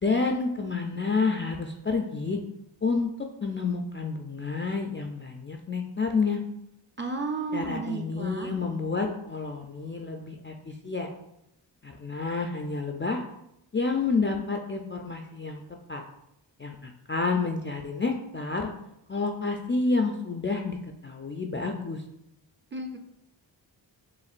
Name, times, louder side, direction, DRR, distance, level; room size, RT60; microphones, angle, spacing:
voice 1, 0.0-2.4 2.8-3.1 3.4-6.4 7.5-11.1 11.8-13.2 13.7-16.0 16.6-18.7 19.1-20.8 21.0-22.0, left 4 dB, 25° left, 3 dB, 0.4 m, -29 dB
voice 2, 7.0-8.5 22.7-23.0, right 3 dB, 25° right, 3 dB, 0.6 m, -33 dB
7.2 x 2.5 x 2.5 m, 0.83 s
wide cardioid pair, 60°, 44 cm